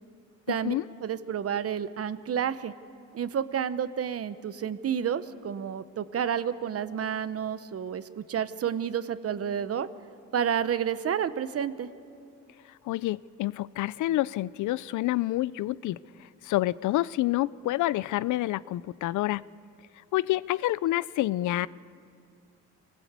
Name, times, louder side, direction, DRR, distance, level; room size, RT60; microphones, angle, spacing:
voice 1, 0.5-0.9 12.9-16.0 16.4-19.4 20.1-21.7, left 16 dB, 75° left, 20 dB, 0.5 m, -28 dB
voice 2, 1.0-2.7 3.1-9.9 10.3-11.9, right 8 dB, 50° right, 13 dB, 1.0 m, -30 dB
25.5 x 19.0 x 8.2 m, 2.4 s
cardioid pair, 90°, 30 cm